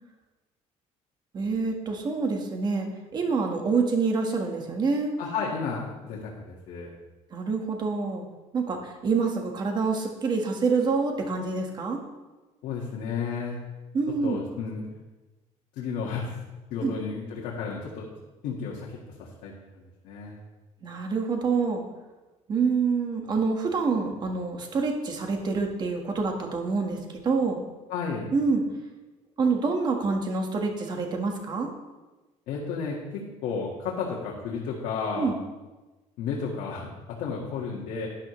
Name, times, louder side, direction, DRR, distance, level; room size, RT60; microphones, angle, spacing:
voice 1, 1.3-5.1 7.3-8.2 8.5-12.0 13.9-14.4 16.8-16.9 20.8-21.8 22.5-27.0 27.2-27.6 28.3-28.6 29.4-31.7 35.2-35.3, right 4 dB, 30° right, 3 dB, 1.5 m, -26 dB
voice 2, 5.2-6.9 12.6-13.6 14.2-14.9 15.8-16.3 16.7-18.1 18.4-19.5 20.0-20.4 27.9-28.3 32.5-35.3 36.2-36.9 37.2-38.1, left 5 dB, 90° left, -4 dB, 1.8 m, -32 dB
11.5 x 10.5 x 3.2 m, 1.2 s
cardioid pair, 160°, 13 cm